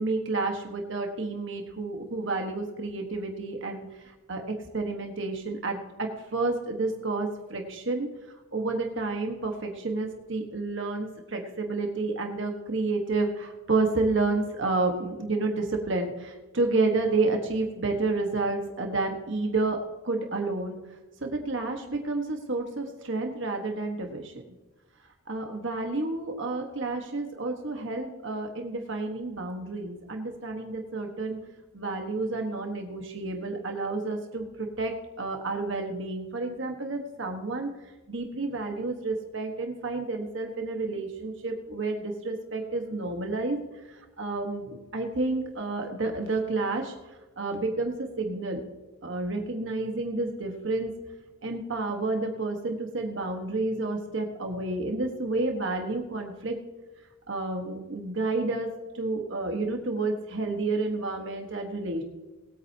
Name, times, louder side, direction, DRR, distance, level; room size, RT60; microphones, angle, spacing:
voice 1, 0.0-8.1 8.5-19.8 20.0-20.8 21.2-24.3 25.3-31.4 31.7-37.7 38.1-43.6 43.8-46.9 47.4-48.6 49.0-50.9 51.4-56.6 57.3-58.7 58.9-62.0, right 3 dB, 55° right, 3 dB, 1.4 m, -30 dB
20.0 x 9.0 x 2.9 m, 1.1 s
head